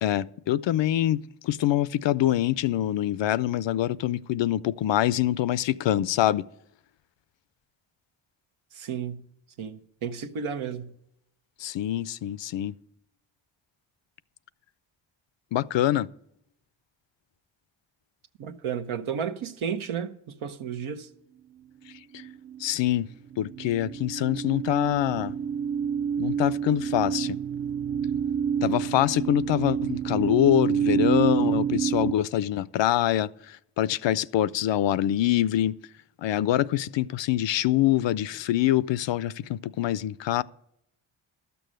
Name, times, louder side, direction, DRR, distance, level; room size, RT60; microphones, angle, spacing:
voice 1, 0.0-6.5 11.6-12.7 15.5-16.1 22.1-22.2 22.6-23.1 23.4-25.3 26.2-27.4 28.6-35.8 36.2-40.4, left 13 dB, 65° left, 0.5 m, -25 dB
voice 2, 8.7-9.2 9.6-11.0 18.4-21.1, right 7 dB, 80° right, 1.0 m, -33 dB
sound 1, 22.2-23.0 23.3-32.1, right 8 dB, 35° right, 0.4 m, -28 dB
12.5 x 6.9 x 6.3 m
cardioid pair, 60°, 49 cm